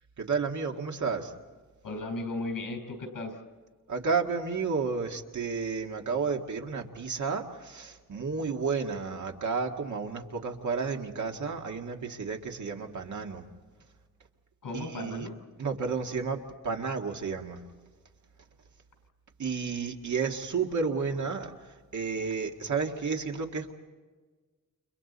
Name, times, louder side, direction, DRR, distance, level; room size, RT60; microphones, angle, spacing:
voice 1, 0.2-1.3 3.9-13.5 14.7-15.3 15.6-17.6 19.4-23.7, right 5 dB, 60° right, 2 dB, 2.0 m, -32 dB
voice 2, 1.8-3.4 14.6-15.3 21.1-21.2, left 2 dB, 85° left, 5 dB, 5.1 m, -36 dB
30.0 x 29.5 x 4.2 m, 1.4 s
wide cardioid pair, 170°, 32 cm